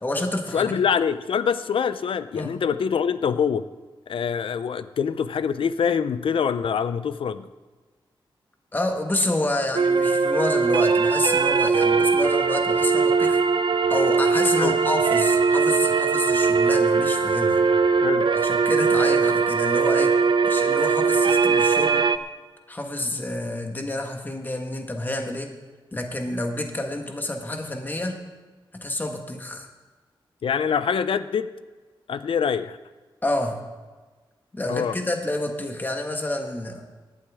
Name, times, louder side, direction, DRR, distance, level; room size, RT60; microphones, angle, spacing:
voice 1, 0.0-0.7 2.3-2.6 8.7-13.4 13.9-17.6 18.3-20.2 20.4-22.0 22.7-25.5 25.9-28.2 28.7-29.7 33.2-33.6 34.5-36.8, left 1 dB, 20° left, 4 dB, 1.3 m, -28 dB
voice 2, 0.5-3.6 4.1-7.5 14.6-14.8 18.0-18.3 30.4-31.5 32.1-32.8 34.7-34.9, left 7 dB, 75° left, 13 dB, 0.5 m, -24 dB
sound 1, 9.7-22.2, right 5 dB, 65° right, 0.5 m, -20 dB
18.0 x 11.5 x 3.6 m, 1.3 s
wide cardioid pair, 145°, 9 cm